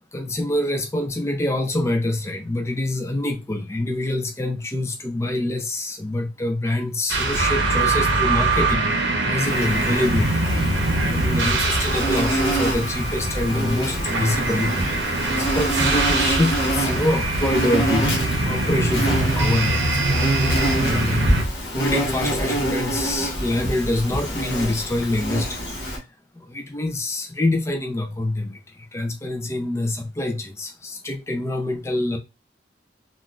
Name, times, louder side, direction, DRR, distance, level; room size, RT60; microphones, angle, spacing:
voice 1, 0.1-10.4 11.1-20.5 20.8-21.5 21.7-26.1 26.3-32.2, left 1 dB, 15° left, 0.4 m, -26 dB
sound 1, 7.1-21.4, right 2 dB, 85° right, 0.7 m, -23 dB
Insect, 9.4-26.0, right 1 dB, 60° left, 1.1 m, -27 dB
3.8 x 2.4 x 2.3 m
head